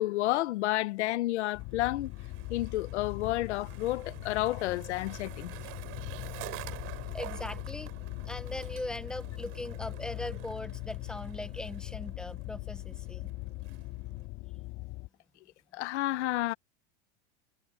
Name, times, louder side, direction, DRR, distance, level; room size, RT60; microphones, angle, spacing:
voice 1, 0.0-2.1 2.5-5.5 15.7-16.5, left 16 dB, 80° left, 1.3 m, -30 dB
sound 1, 1.5-15.1, left 20 dB, 40° left, 3.3 m, -41 dB
Skateboard, 1.5-14.3, right 21 dB, 40° right, 4.8 m, -48 dB
voice 2, 7.1-7.9 8.2-13.3, left 1 dB, ahead, 1.1 m, -40 dB
supercardioid pair, 165°, 34 cm